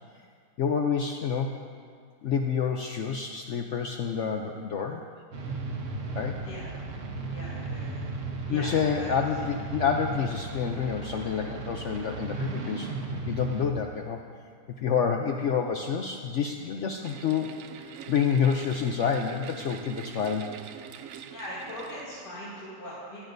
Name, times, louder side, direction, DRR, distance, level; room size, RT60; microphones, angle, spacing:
voice 1, 0.6-1.6 2.2-5.0 6.1-6.4 8.5-12.9 13.3-14.2 14.8-20.5, left 6 dB, 85° left, 3 dB, 0.6 m, -28 dB
sound 1, 5.3-13.7, right 3 dB, 50° right, 1.2 m, -35 dB
voice 2, 7.2-8.0 8.5-9.1 21.3-23.2, equal, 70° left, -10 dB, 3.2 m, -40 dB
sound 2, 17.0-22.6, right 9 dB, 80° right, 0.7 m, -44 dB
17.0 x 12.5 x 2.6 m, 2.2 s
omnidirectional pair, 1.9 m